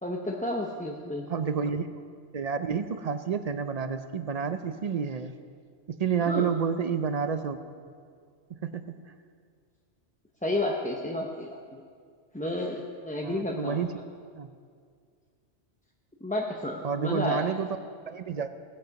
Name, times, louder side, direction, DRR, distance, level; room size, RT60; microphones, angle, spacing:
voice 1, 0.0-1.3 6.2-6.5 10.4-11.8 12.3-13.8 16.2-17.4, left 1 dB, 10° left, -1 dB, 0.6 m, -31 dB
voice 2, 1.3-1.9 2.3-5.3 5.9-7.6 7.9-8.0 8.5-9.0 13.2-14.0 14.3-14.5 16.8-17.8 18.1-18.5, right 6 dB, 50° right, 10 dB, 0.5 m, -30 dB
18.0 x 8.1 x 5.9 m, 2.1 s
omnidirectional pair, 1.2 m